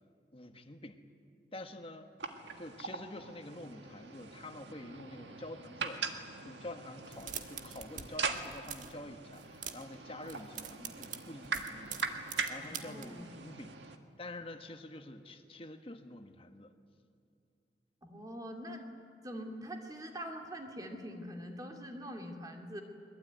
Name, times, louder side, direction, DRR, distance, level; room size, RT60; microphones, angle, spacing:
voice 1, 0.3-1.0 1.5-2.1 2.6-6.0 6.4-12.0 12.5-13.7 14.2-16.7, left 1 dB, 30° left, 7 dB, 1.4 m, -47 dB
sound 1, 2.2-14.0, right 4 dB, 75° right, 1.8 m, -42 dB
sound 2, 7.0-8.1 8.3-9.0 9.3-9.9 10.2-13.1, right 8 dB, 45° right, 1.5 m, -44 dB
voice 2, 12.6-13.3 18.0-18.9 19.2-22.8, equal, 20° right, 3 dB, 2.4 m, -44 dB
22.5 x 22.0 x 9.3 m, 2.5 s
head